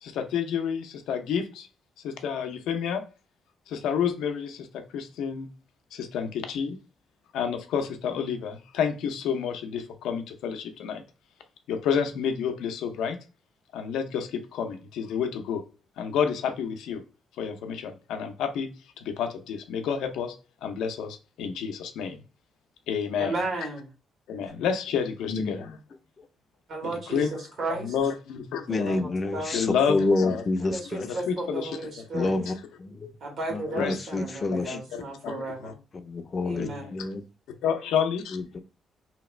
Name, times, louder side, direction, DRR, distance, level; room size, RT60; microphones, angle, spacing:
voice 1, 0.0-1.7 2.0-3.0 3.7-5.5 5.9-6.8 7.3-11.0 11.7-13.2 13.7-15.6 16.0-17.0 17.4-18.7 19.0-20.4 20.6-22.2 22.9-23.3 24.3-25.7 26.8-27.3 27.7-29.0 29.5-30.4 31.0-31.8 32.2-32.3 33.7-34.0 34.7-35.7 36.6-36.9 37.6-38.4, left 7 dB, 85° left, 0.5 m, -29 dB
voice 2, 23.2-23.9 26.7-27.9 28.7-29.6 30.6-32.4 33.2-35.7 36.4-37.0, right 2 dB, 60° right, 1.4 m, -34 dB
voice 3, 25.3-25.8 28.7-31.1 32.1-33.1 33.5-34.8 35.9-37.2 38.3-38.6, left 2 dB, 40° left, 0.5 m, -28 dB
2.9 x 2.4 x 3.1 m
cardioid pair, 90°, 0 cm